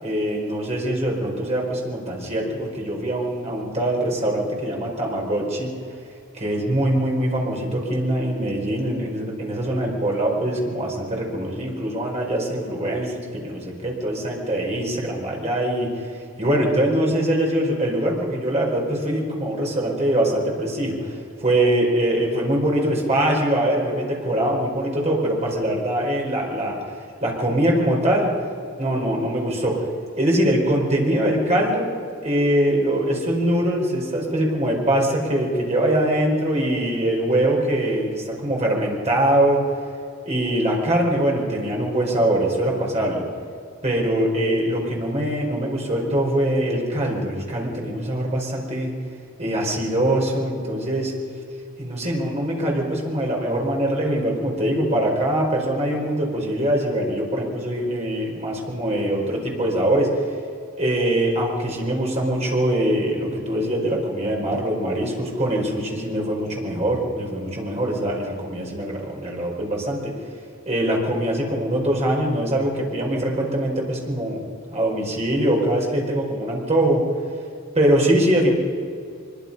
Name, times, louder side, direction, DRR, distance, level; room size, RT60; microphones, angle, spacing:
voice 1, 0.0-5.7 6.3-16.0 16.4-26.8 27.2-28.3 28.8-29.9 30.2-31.9 32.2-39.7 40.2-43.2 43.8-48.9 49.4-51.1 51.8-60.2 60.8-70.2 70.6-74.4 74.7-77.1 77.7-78.5, right 1 dB, 30° right, -1 dB, 4.6 m, -23 dB
24.0 x 22.0 x 5.5 m, 2.4 s
head